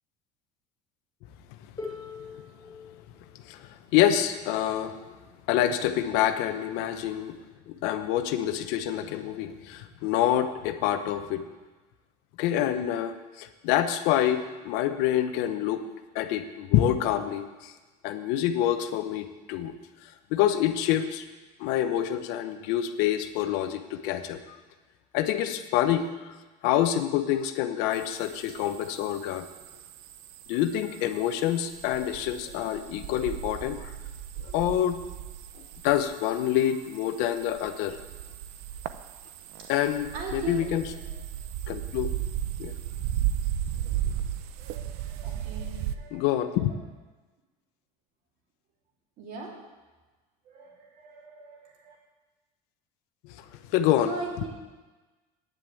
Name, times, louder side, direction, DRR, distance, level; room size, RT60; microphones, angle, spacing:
Harp, 1.8-7.6 8.6-8.7, left 4 dB, 25° left, 3.4 m, -46 dB
voice 1, 3.4-5.1 5.5-7.4 7.7-11.5 12.4-15.8 16.1-17.7 18.0-19.7 20.3-21.2 21.6-24.4 25.1-26.1 26.6-29.5 30.5-33.9 34.4-35.0 35.8-38.0 39.7-40.8 41.7-42.1 42.6-42.7 46.1-46.7 53.2-54.5, left 11 dB, 75° left, 9 dB, 1.0 m, -27 dB
sound 1, 27.9-45.9, right 11 dB, 75° right, 0.7 m, -36 dB
voice 2, 40.1-40.7 44.6-46.3 49.2-49.6 50.5-52.0 54.1-54.5, right 4 dB, 60° right, -2 dB, 3.5 m, -39 dB
9.4 x 7.8 x 8.5 m, 1.2 s
supercardioid pair, 110°, 17 cm